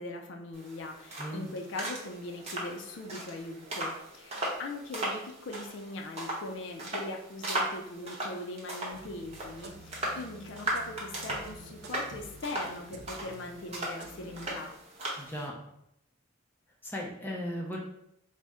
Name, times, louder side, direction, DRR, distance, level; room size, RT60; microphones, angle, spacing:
voice 1, 0.0-14.7, left 2 dB, 60° left, 2 dB, 0.4 m, -41 dB
sound 1, 0.5-15.5, right 1 dB, 30° right, 0.8 m, -38 dB
sound 2, 8.9-14.5, right 2 dB, 50° right, 0.4 m, -50 dB
voice 2, 15.2-15.6 16.8-17.8, equal, 10° left, -2 dB, 0.5 m, -36 dB
3.9 x 2.0 x 3.5 m, 0.76 s
head